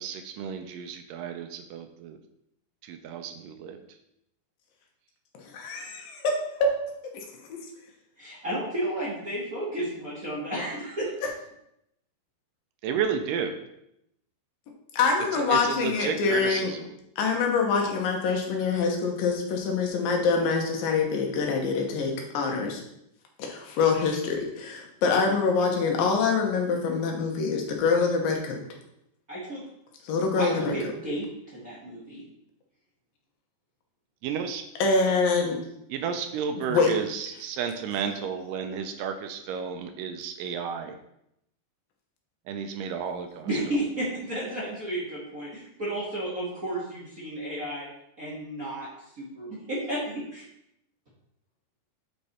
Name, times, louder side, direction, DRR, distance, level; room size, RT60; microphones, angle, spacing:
voice 1, 0.0-2.2 2.8-3.8 12.8-13.6 15.3-16.9 34.2-34.6 35.9-41.0 42.5-43.5, right 7 dB, 80° right, 7 dB, 2.2 m, -32 dB
voice 2, 5.5-6.2 7.1-7.2 7.5-7.6 14.9-16.7 17.2-22.8 23.4-28.6 30.0-30.8 34.8-35.6 36.7-36.9, left 4 dB, 85° left, 1 dB, 2.9 m, -25 dB
voice 3, 8.2-11.1 29.3-29.6 30.4-32.2 43.4-47.9 48.2-48.9 49.2-50.4, right 1 dB, 45° right, -6 dB, 1.2 m, -32 dB
8.3 x 4.6 x 4.2 m, 0.79 s
omnidirectional pair, 4.0 m